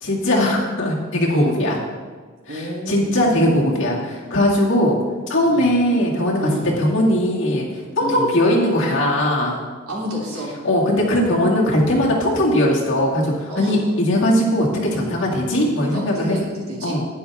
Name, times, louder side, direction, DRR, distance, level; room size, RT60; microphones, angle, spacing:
voice 1, 0.0-1.8 2.5-5.0 5.3-6.5 6.8-7.7 8.0-9.6 10.6-16.4 16.8-17.1, left 1 dB, 60° left, -3 dB, 2.2 m, -19 dB
voice 2, 2.5-3.1 5.5-5.7 6.4-6.7 8.0-8.3 9.9-10.5 13.5-13.7 15.8-17.0, equal, 85° right, -5 dB, 3.3 m, -29 dB
11.5 x 9.6 x 3.6 m, 1.5 s
head